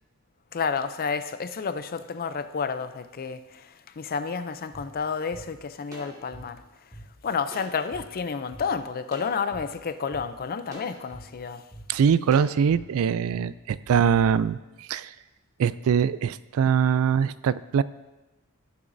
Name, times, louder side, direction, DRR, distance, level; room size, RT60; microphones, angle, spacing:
voice 1, 0.5-6.6 7.2-11.6, left 5 dB, 40° left, 0.5 m, -30 dB
sound 1, 4.7-4.8 5.3-5.4 5.9-7.0 7.5-8.0 8.5-8.6 9.1-9.6 10.1-10.2 10.7-11.2 11.7-11.8 12.3-12.8 13.3-13.4, equal, 15° right, 2.2 m, -44 dB
voice 2, 11.9-15.1 15.6-17.8, right 7 dB, 70° right, 0.3 m, -23 dB
16.5 x 6.9 x 2.6 m
head